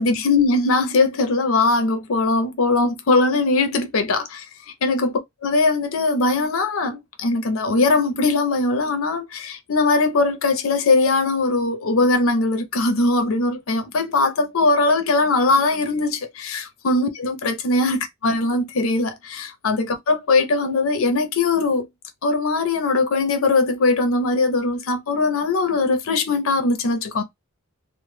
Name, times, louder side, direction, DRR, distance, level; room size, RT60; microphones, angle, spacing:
voice 1, 0.0-4.5 4.8-21.9 22.2-27.2, left 3 dB, 65° left, 0.5 m, -20 dB
2.1 x 2.1 x 3.1 m
head